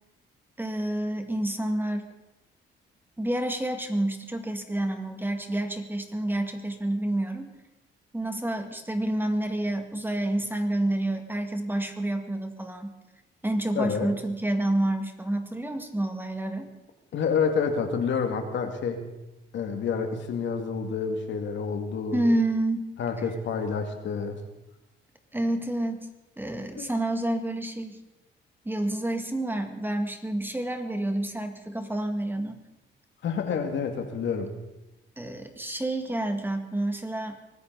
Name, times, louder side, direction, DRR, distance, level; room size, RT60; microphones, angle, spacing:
voice 1, 0.6-2.1 3.2-7.5 8.1-12.9 13.4-16.7 22.1-22.9 25.3-26.1 26.4-28.0 28.6-32.6 35.2-37.4, right 1 dB, 10° right, 6 dB, 2.1 m, -29 dB
voice 2, 13.7-14.1 17.1-19.0 19.5-22.2 23.0-24.4 26.8-26.9 33.2-34.5, left 6 dB, 70° left, 5 dB, 2.4 m, -28 dB
24.0 x 14.5 x 4.1 m, 0.96 s
cardioid pair, 90°, 20 cm